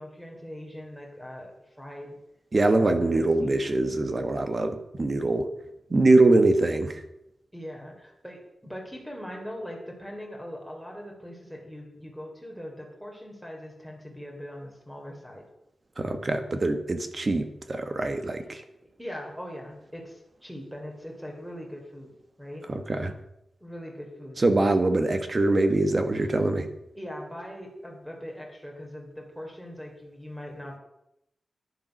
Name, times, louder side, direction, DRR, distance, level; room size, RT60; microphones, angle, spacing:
voice 1, 0.0-2.2 2.7-3.8 7.5-15.5 18.4-18.5 19.0-22.1 22.4-22.7 23.6-24.4 26.2-26.4 26.9-30.8, equal, ahead, 1 dB, 3.4 m, -41 dB
voice 2, 2.5-5.5 5.9-7.0 16.0-18.6 22.7-23.1 24.4-26.7, right 2 dB, 30° right, 8 dB, 1.4 m, -23 dB
11.5 x 10.0 x 6.5 m, 0.82 s
wide cardioid pair, 170°, 0 cm